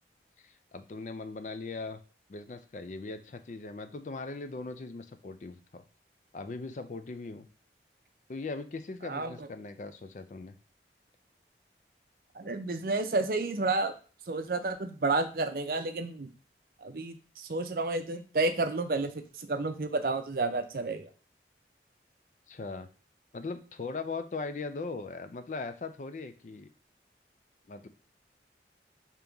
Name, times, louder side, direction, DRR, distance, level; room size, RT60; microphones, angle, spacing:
voice 1, 0.4-2.0 2.3-5.8 6.3-7.5 8.3-10.6 22.5-22.9 23.3-26.7 27.7-27.9, left 3 dB, 45° left, 9 dB, 0.4 m, -39 dB
voice 2, 9.0-9.5 12.3-13.9 14.3-16.3 16.8-21.1, right 3 dB, 55° right, 8 dB, 0.5 m, -31 dB
5.3 x 2.9 x 3.4 m, 0.37 s
head